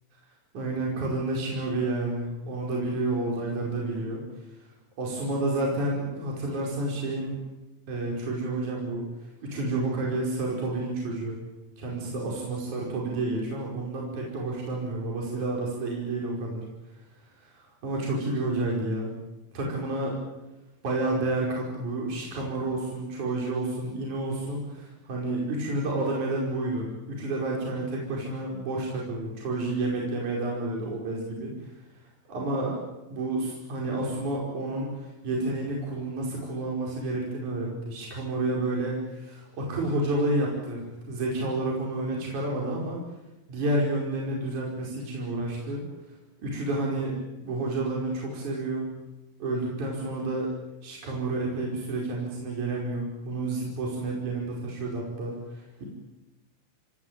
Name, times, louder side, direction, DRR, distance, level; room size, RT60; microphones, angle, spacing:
voice 1, 0.5-4.2 5.0-7.4 7.9-9.1 9.4-11.4 11.8-16.6 17.4-19.1 19.5-20.2 20.8-31.7 32.0-32.8 33.1-43.0 43.5-45.8 46.4-48.9 49.4-50.5 50.8-55.8, right 2 dB, 50° right, -2 dB, 6.4 m, -30 dB
26.0 x 18.0 x 9.0 m, 1.0 s
omnidirectional pair, 4.3 m